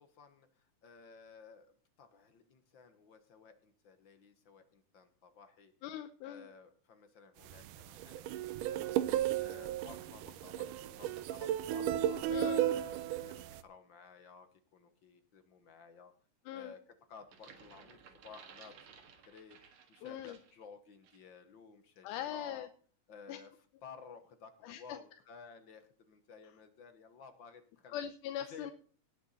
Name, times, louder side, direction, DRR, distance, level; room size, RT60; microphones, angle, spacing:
voice 1, 0.0-1.7 2.0-5.7 6.2-8.4 8.7-12.3 12.7-16.1 16.5-22.7 23.1-28.0 28.4-28.7, left 5 dB, 50° left, 9 dB, 1.6 m, -55 dB
voice 2, 5.8-6.5 12.3-12.7 16.5-16.7 20.0-20.4 22.0-22.7 23.3-23.4 24.6-25.0 27.9-28.7, left 10 dB, 85° left, 9 dB, 2.3 m, -41 dB
sound 1, 7.5-13.6, right 11 dB, 90° right, 2.3 m, -34 dB
sound 2, 17.2-20.6 21.0-21.3, right 7 dB, 70° right, 2.9 m, -57 dB
18.5 x 7.0 x 4.2 m, 0.43 s
omnidirectional pair, 3.6 m